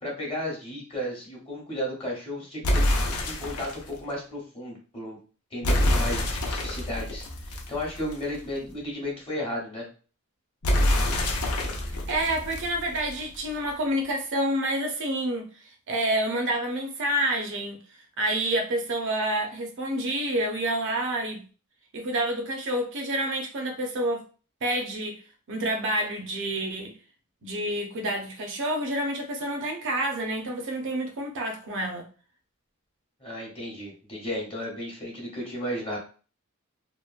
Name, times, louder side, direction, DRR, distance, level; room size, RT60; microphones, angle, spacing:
voice 1, 0.0-2.8 3.2-5.2 5.5-9.8 33.2-36.0, left 1 dB, 25° left, -3 dB, 0.8 m, -34 dB
sound 1, 2.6-3.9 5.6-8.4 10.6-13.4, left 1 dB, 80° left, 0.6 m, -26 dB
voice 2, 12.1-17.8 18.2-21.4 21.9-24.2 24.6-25.2 25.5-26.9 27.4-32.0, right 1 dB, 60° right, 3 dB, 0.6 m, -28 dB
2.9 x 2.1 x 2.4 m, 0.38 s
head